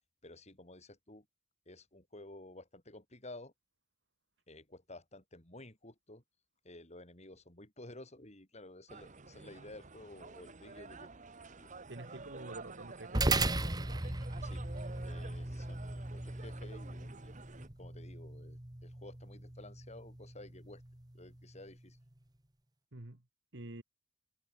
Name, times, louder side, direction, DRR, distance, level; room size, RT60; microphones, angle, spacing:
voice 1, 0.2-1.3 1.7-3.5 4.5-6.2 6.6-11.1 11.6-11.7 14.4-14.7 15.0-17.4 17.8-20.8 21.1-22.0, left 2 dB, 35° left, 7.6 m, -53 dB
sound 1, 8.9-17.7, right 3 dB, 40° right, 1.5 m, -51 dB
voice 2, 11.9-13.5 22.9-23.2 23.5-23.8, right 2 dB, 70° right, 1.9 m, -47 dB
sound 2, 13.1-21.8, right 2 dB, 20° right, 1.5 m, -38 dB
head